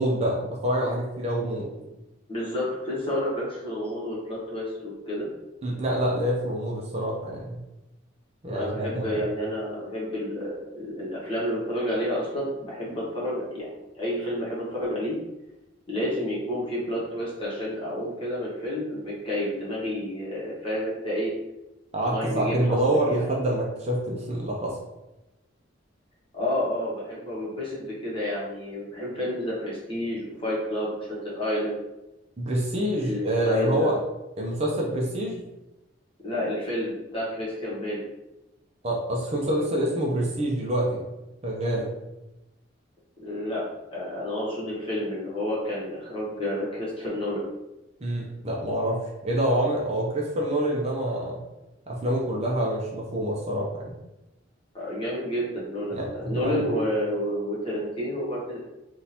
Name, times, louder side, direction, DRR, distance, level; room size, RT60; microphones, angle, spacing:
voice 1, 0.0-1.7 5.6-7.6 8.4-9.1 21.9-24.8 32.4-33.9 34.4-35.4 38.8-41.1 41.4-41.9 48.0-51.4 51.9-54.0 55.9-56.6, right 1 dB, 35° right, -3 dB, 0.6 m, -26 dB
voice 2, 2.3-5.3 8.5-15.2 15.9-21.3 22.0-23.3 26.3-31.8 33.0-33.9 36.2-38.0 43.2-43.6 43.9-47.5 54.7-58.6, left 1 dB, 30° left, -7 dB, 1.2 m, -30 dB
3.7 x 2.6 x 2.8 m, 0.97 s
head